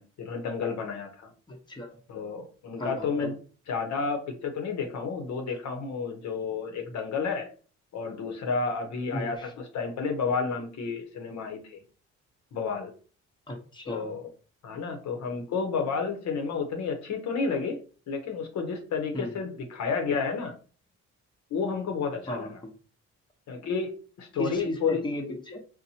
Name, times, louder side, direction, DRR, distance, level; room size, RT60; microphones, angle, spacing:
voice 1, 0.0-1.3 2.1-3.4 3.7-7.5 7.9-11.8 12.5-12.9 13.9-14.3 14.6-17.8 18.1-20.6 21.5-22.5 23.5-25.0, left 5 dB, 65° left, 4 dB, 0.8 m, -31 dB
voice 2, 1.5-2.0 2.8-3.3 9.1-9.5 13.5-14.1 19.1-19.4 22.3-22.7 24.4-25.6, left 1 dB, 15° left, 1 dB, 0.8 m, -35 dB
4.1 x 2.2 x 2.8 m, 0.39 s
cardioid pair, 90°, 30 cm